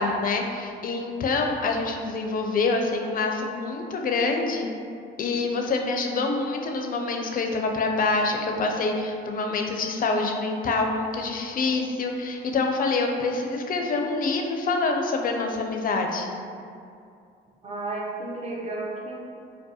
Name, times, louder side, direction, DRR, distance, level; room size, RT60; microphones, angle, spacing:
voice 1, 0.0-4.7 5.2-16.3, left 3 dB, 45° left, 3 dB, 0.4 m, -26 dB
voice 2, 17.6-19.2, right 2 dB, 30° right, -3 dB, 0.7 m, -32 dB
4.6 x 2.1 x 2.8 m, 2.4 s
cardioid pair, 90°, 20 cm